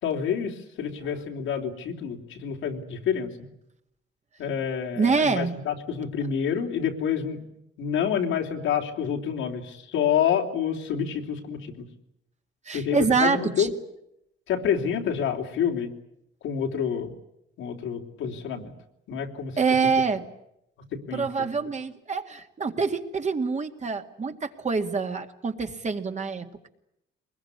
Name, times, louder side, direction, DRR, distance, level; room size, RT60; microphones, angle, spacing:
voice 1, 0.0-3.3 4.4-7.4 7.8-11.9 12.7-13.7 14.5-15.9 16.4-17.1 17.6-18.7 19.1-19.6 19.8-19.9 21.1-21.5, left 8 dB, 85° left, 2 dB, 3.4 m, -28 dB
voice 2, 5.0-5.5 12.7-13.7 19.6-20.2 21.1-26.7, right 5 dB, 35° right, 6 dB, 2.3 m, -26 dB
23.5 x 21.0 x 9.8 m, 0.81 s
cardioid pair, 90°, 20 cm